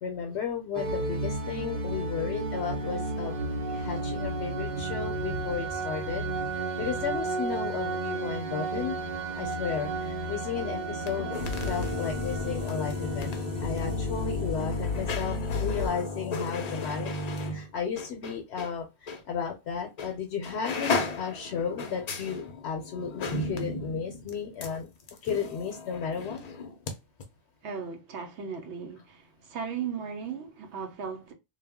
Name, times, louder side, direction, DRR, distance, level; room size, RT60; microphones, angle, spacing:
voice 1, 0.0-3.4 3.7-6.3 6.8-9.0 9.4-11.4 11.7-13.3 13.6-24.9 25.2-26.4, left 7 dB, 80° left, 0.8 m, -34 dB
sound 1, 0.7-15.9, right 1 dB, 55° right, 0.5 m, -33 dB
sound 2, 11.0-18.7 19.1-19.2 20.0-20.2 20.4-26.9 27.2-27.3, left 3 dB, 50° left, 0.5 m, -34 dB
voice 2, 27.6-29.2 29.5-31.3, right 6 dB, 85° right, 0.9 m, -36 dB
2.3 x 2.1 x 3.4 m
omnidirectional pair, 1.1 m